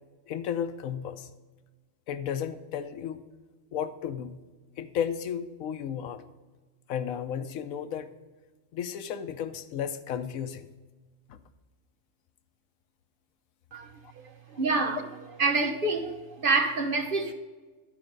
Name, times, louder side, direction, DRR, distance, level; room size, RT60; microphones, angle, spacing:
voice 1, 0.3-1.3 2.1-3.2 3.7-4.5 4.8-6.2 6.9-8.1 8.7-10.7 11.3-11.4, left 8 dB, 85° left, 1.1 m, -33 dB
voice 2, 14.5-15.1 15.4-17.3, right 3 dB, 45° right, 1.2 m, -27 dB
12.0 x 4.9 x 5.2 m
omnidirectional pair, 1.4 m